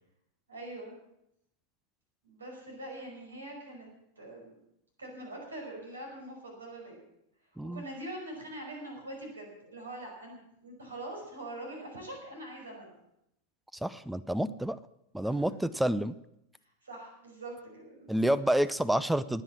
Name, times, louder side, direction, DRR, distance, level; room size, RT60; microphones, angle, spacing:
voice 1, 0.5-0.9 2.2-3.9 4.2-4.5 5.0-7.0 7.7-12.9 15.2-15.5 16.8-18.3, right 1 dB, 75° right, 0 dB, 5.5 m, -43 dB
voice 2, 13.8-14.8 15.1-16.2 18.1-19.4, right 1 dB, 5° right, 18 dB, 0.5 m, -28 dB
19.5 x 8.0 x 7.3 m, 0.79 s
figure-of-eight pair, 90°, 0 cm